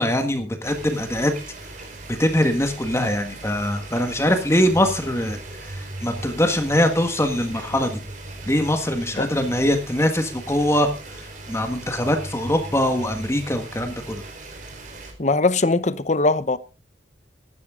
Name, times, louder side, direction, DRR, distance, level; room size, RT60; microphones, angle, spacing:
voice 1, 0.0-1.3 2.2-5.4 6.0-8.0 8.5-10.9 11.5-14.2, left 1 dB, 15° left, 1.6 m, -22 dB
sound 1, 0.6-15.1, right 2 dB, 45° right, 4.6 m, -38 dB
voice 2, 15.2-16.6, left 3 dB, 40° left, 0.8 m, -20 dB
16.0 x 12.0 x 3.8 m
head